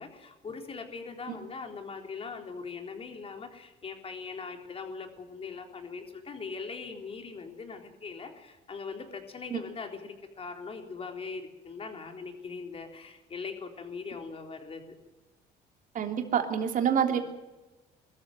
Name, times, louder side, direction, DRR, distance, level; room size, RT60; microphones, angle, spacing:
voice 1, 0.0-14.9 17.1-17.2, left 4 dB, 35° left, 5 dB, 3.7 m, -41 dB
voice 2, 15.9-17.2, right 8 dB, 50° right, 4 dB, 3.3 m, -27 dB
21.5 x 13.5 x 9.3 m, 1.1 s
cardioid pair, 110°, 17 cm